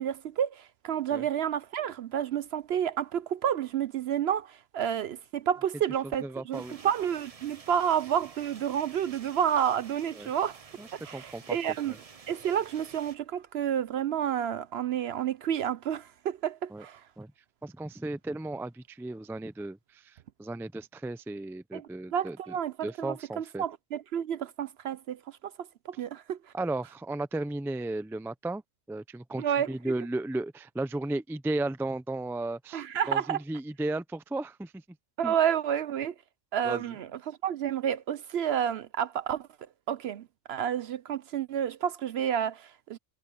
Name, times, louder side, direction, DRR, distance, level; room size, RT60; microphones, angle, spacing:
voice 1, 0.0-10.6 11.0-11.9 12.3-17.0 21.7-25.5 25.9-26.4 29.4-29.7 32.7-33.4 35.2-36.1 36.5-39.5 39.9-43.0, right 9 dB, 65° right, 0.7 m, -30 dB
voice 2, 6.2-6.8 10.2-10.3 10.8-11.6 11.9-12.0 16.7-16.8 17.2-17.3 17.6-22.6 22.8-23.6 26.5-28.6 28.9-34.8 35.2-35.4 36.6-36.9, right 2 dB, 5° right, 0.3 m, -35 dB
sound 1, 6.5-13.2, right 5 dB, 35° right, 0.8 m, -51 dB
omnidirectional pair, 1.3 m